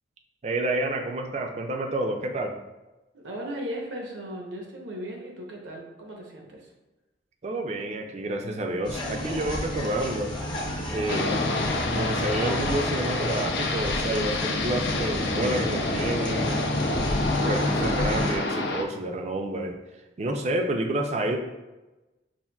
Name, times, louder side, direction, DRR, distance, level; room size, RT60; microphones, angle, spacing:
voice 1, 0.4-2.6 7.4-10.3 10.9-11.5 11.9-16.6 17.5-19.8 20.2-21.4, right 1 dB, 35° right, 4 dB, 0.3 m, -29 dB
voice 2, 3.1-6.7, equal, 90° right, 0 dB, 0.8 m, -37 dB
sound 1, 8.8-18.4, left 1 dB, 25° left, 0.6 m, -31 dB
sound 2, 11.1-18.8, left 2 dB, 65° left, 0.4 m, -28 dB
5.5 x 2.5 x 2.3 m, 1.1 s
head